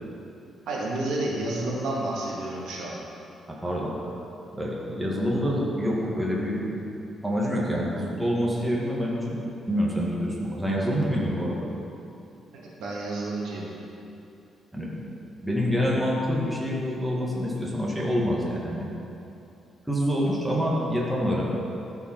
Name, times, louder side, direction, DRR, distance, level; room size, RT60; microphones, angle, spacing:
voice 1, 0.7-3.0 12.8-13.7, right 2 dB, 80° right, -4 dB, 1.9 m, -30 dB
voice 2, 3.5-3.9 4.5-6.9 7.2-9.4 9.7-11.7 14.7-14.9 15.4-18.9 19.9-21.4, equal, 5° right, -5 dB, 1.7 m, -26 dB
14.0 x 4.8 x 4.5 m, 2.8 s
cardioid pair, 115°, 0 cm